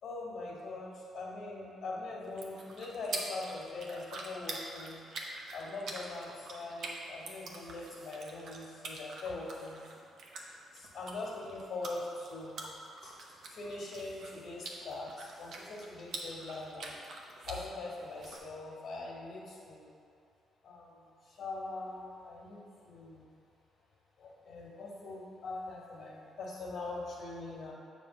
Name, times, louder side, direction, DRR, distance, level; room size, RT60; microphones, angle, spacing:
voice 1, 0.0-5.0 5.5-9.8 10.7-12.6 13.0-13.1 13.5-17.0 17.5-19.9 20.6-22.6 22.8-23.2 24.2-27.7, left 2 dB, 65° left, -6 dB, 1.6 m, -42 dB
sound 1, 2.2-18.4, right 2 dB, 70° right, 0.9 m, -46 dB
7.3 x 3.3 x 5.9 m, 2.6 s
cardioid pair, 90°, 0 cm